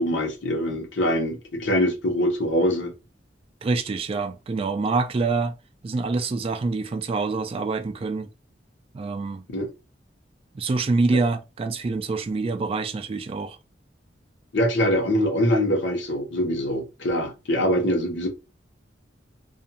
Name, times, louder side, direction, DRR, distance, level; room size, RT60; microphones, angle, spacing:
voice 1, 0.0-2.9 9.5-9.7 14.5-18.3, equal, 75° left, 0.9 m, -23 dB
voice 2, 3.6-5.5 5.8-8.3 8.9-9.4 10.5-13.6, right 3 dB, 30° right, 0.3 m, -26 dB
2.4 x 2.3 x 2.8 m
head